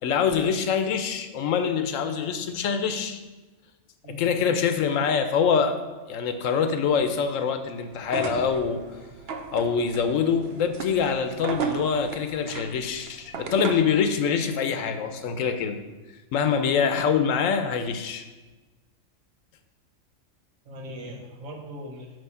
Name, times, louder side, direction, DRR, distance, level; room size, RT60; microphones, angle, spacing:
voice 1, 0.0-3.2 4.2-5.8 6.1-8.8 9.5-15.8 16.3-18.2, left 6 dB, 75° left, 8 dB, 1.0 m, -25 dB
sound 1, 8.0-14.0, right 5 dB, 60° right, 0.8 m, -35 dB
voice 2, 20.6-22.2, equal, 80° right, 1 dB, 1.5 m, -39 dB
8.9 x 3.2 x 5.6 m, 1.2 s
omnidirectional pair, 1.4 m